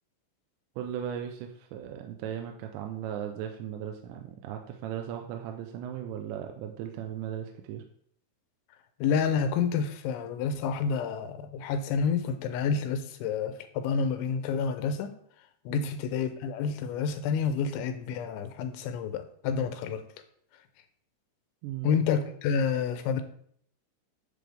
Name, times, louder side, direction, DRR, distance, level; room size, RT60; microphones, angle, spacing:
voice 1, 0.8-7.8 15.7-15.9 21.6-22.0, right 9 dB, 80° right, 4 dB, 2.9 m, -37 dB
voice 2, 9.0-15.1 15.7-20.0 21.8-23.2, left 6 dB, 85° left, 8 dB, 3.2 m, -29 dB
10.0 x 7.8 x 3.5 m, 0.63 s
omnidirectional pair, 5.3 m